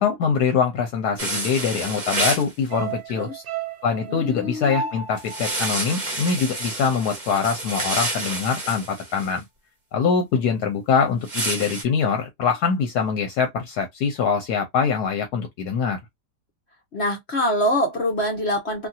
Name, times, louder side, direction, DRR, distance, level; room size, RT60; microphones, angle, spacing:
voice 1, 0.0-3.3 3.8-9.4 9.9-16.0, left 6 dB, 75° left, 1.2 m, -23 dB
sound 1, 1.2-2.5 5.2-9.3 11.2-11.8, right 2 dB, 30° right, 1.2 m, -29 dB
sound 2, 2.7-7.1 7.4-7.5, right 6 dB, 75° right, 1.1 m, -34 dB
voice 2, 3.1-3.4 4.1-4.7 16.9-18.9, equal, 50° left, 0.9 m, -24 dB
2.9 x 2.7 x 2.3 m
omnidirectional pair, 1.8 m